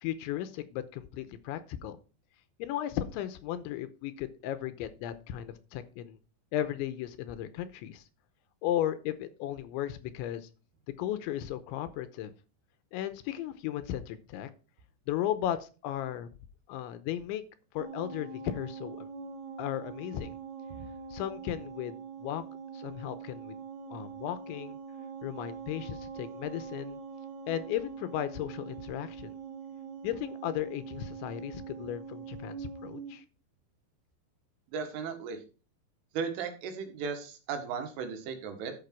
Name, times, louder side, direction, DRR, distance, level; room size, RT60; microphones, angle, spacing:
voice 1, 0.0-2.0 2.6-6.2 6.5-8.0 8.6-10.5 10.9-12.3 12.9-14.5 15.1-16.3 16.7-17.4 17.7-19.1 19.6-20.3 21.1-22.4 22.7-23.6 23.9-24.8 25.2-27.0 27.5-29.3 30.0-33.2, left 11 dB, 85° left, 12 dB, 3.0 m, -35 dB
sound 1, 17.8-33.2, right 5 dB, 60° right, 3.5 m, -43 dB
voice 2, 34.7-35.4 36.1-38.7, right 6 dB, 85° right, 6 dB, 4.2 m, -36 dB
12.0 x 6.2 x 4.6 m, 0.34 s
omnidirectional pair, 5.5 m